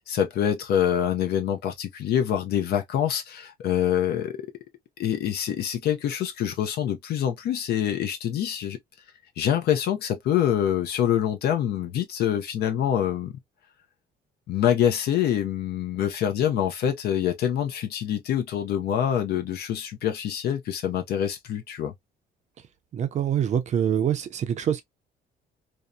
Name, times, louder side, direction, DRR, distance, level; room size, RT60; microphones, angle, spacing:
voice 1, 0.1-4.5 5.0-8.8 9.4-13.3 14.5-21.9, left 10 dB, 65° left, 0.5 m, -25 dB
voice 2, 22.9-24.8, right 9 dB, 40° right, 0.5 m, -25 dB
2.7 x 2.1 x 2.2 m
cardioid pair, 140°, 18 cm